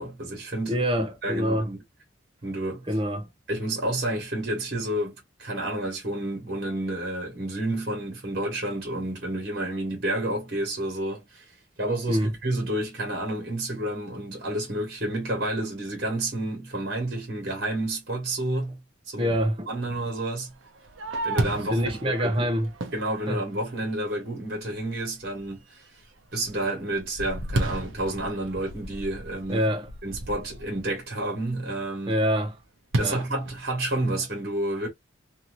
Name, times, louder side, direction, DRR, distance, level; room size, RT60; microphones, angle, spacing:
voice 1, 0.0-1.8 2.4-2.8 3.5-11.4 11.8-18.8 19.1-19.3 19.7-20.5 21.2-21.9 22.2-22.5 22.9-25.6 26.3-29.6 30.0-32.1 33.0-34.9, right 1 dB, 50° right, 1.6 m, -30 dB
voice 2, 0.7-1.7 2.9-3.3 12.1-12.3 19.2-19.9 21.7-22.7 23.3-23.4 29.5-29.9 32.1-32.6 33.0-33.2, equal, 25° right, 0.7 m, -26 dB
Fireworks, 20.5-24.0 24.6-24.7 25.2-25.6 26.0-30.8 32.9-34.3, right 2 dB, 90° right, 0.7 m, -33 dB
2.9 x 2.7 x 2.6 m
head